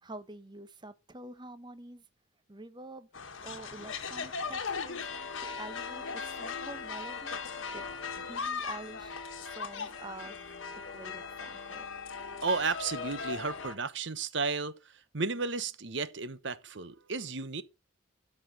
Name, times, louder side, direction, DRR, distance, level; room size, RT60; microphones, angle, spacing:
voice 1, 0.0-2.0 2.5-3.1 3.4-5.1 5.4-7.4 7.7-7.8 8.2-9.2 9.5-10.3 10.7-11.8, right 2 dB, 20° right, 0.8 m, -47 dB
sound 1, 3.1-13.8, left 5 dB, 75° left, 1.4 m, -38 dB
voice 2, 12.4-14.8 15.1-17.6, right 4 dB, 60° right, 1.0 m, -33 dB
13.0 x 5.6 x 4.0 m
head